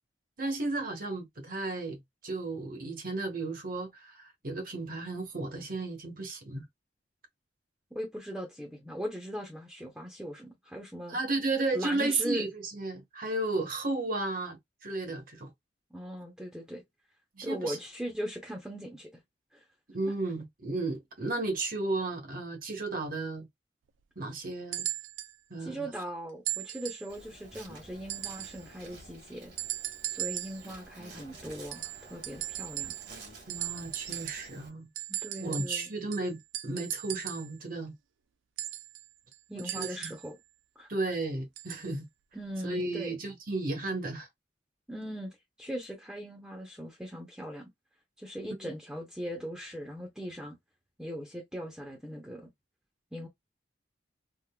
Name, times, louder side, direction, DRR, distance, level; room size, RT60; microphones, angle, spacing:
voice 1, 0.4-6.6 11.1-15.5 17.3-17.8 19.9-23.5 24.2-24.9 25.5-25.9 33.5-34.9 35.4-37.9 39.6-40.1 40.9-42.1 42.6-44.3 48.6-48.7, right 2 dB, 45° right, 1.0 m, -34 dB
voice 2, 7.9-11.2 11.7-12.5 15.9-16.8 17.4-19.2 19.5-19.6 25.6-29.5 30.1-32.9 35.2-35.9 39.5-40.4 40.8-40.9 42.3-43.2 44.9-47.7 48.2-50.5 51.0-52.5 53.1-53.3, equal, 5° right, 0.7 m, -39 dB
sound 1, 24.7-25.4 26.5-27.1 28.1-28.6 29.6-30.7 31.7-33.2 33.5-34.6 35.0-37.5 38.6-40.3 41.6-41.9 42.8-42.9, right 14 dB, 85° right, 0.4 m, -38 dB
Insect, 27.1-34.7, right 2 dB, 70° right, 1.8 m, -50 dB
3.6 x 2.5 x 2.3 m
head